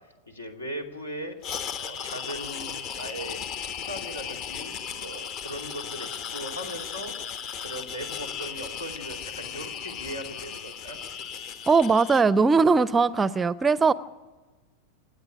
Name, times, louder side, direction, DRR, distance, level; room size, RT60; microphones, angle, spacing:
voice 1, 0.3-1.4 1.8-7.1 7.6-11.2, equal, 80° left, 4 dB, 2.7 m, -39 dB
sound 1, 1.4-12.2, left 8 dB, 40° left, 1.2 m, -36 dB
voice 2, 11.7-13.9, right 4 dB, 15° right, 19 dB, 0.5 m, -20 dB
28.0 x 9.4 x 10.0 m, 1.2 s
figure-of-eight pair, 90°, 0 cm